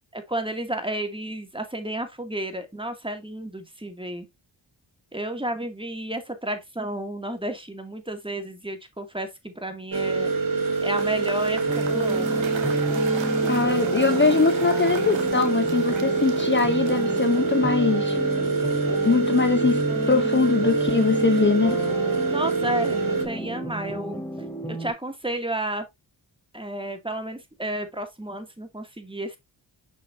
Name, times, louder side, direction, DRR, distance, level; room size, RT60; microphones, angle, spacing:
voice 1, 0.1-4.3 5.1-10.3 10.8-12.5 22.3-24.2 24.7-25.9 26.5-29.4, right 1 dB, 10° right, 2.3 m, -32 dB
sound 1, 9.9-23.2, right 4 dB, 40° right, 2.1 m, -25 dB
Cheering / Applause / Crowd, 10.7-17.8, right 6 dB, 65° right, 1.7 m, -40 dB
sound 2, 11.7-24.9, equal, 5° left, 3.9 m, -31 dB
voice 2, 13.4-18.2 19.0-21.9, left 4 dB, 25° left, 0.8 m, -22 dB
6.3 x 6.1 x 2.7 m
cardioid pair, 45°, 49 cm